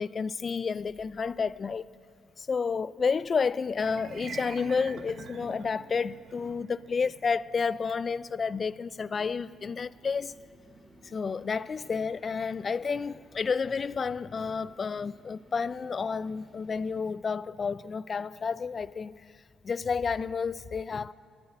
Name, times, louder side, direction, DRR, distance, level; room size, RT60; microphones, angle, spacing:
voice 1, 0.0-1.9 2.4-10.4 11.0-19.3 19.6-21.1, left 5 dB, 40° left, 0.3 m, -30 dB
sound 1, 3.7-14.0, right 5 dB, 55° right, 0.7 m, -49 dB
sound 2, 9.1-17.0, right 1 dB, 10° right, 3.4 m, -58 dB
11.0 x 9.7 x 9.6 m
cardioid pair, 90°, 0 cm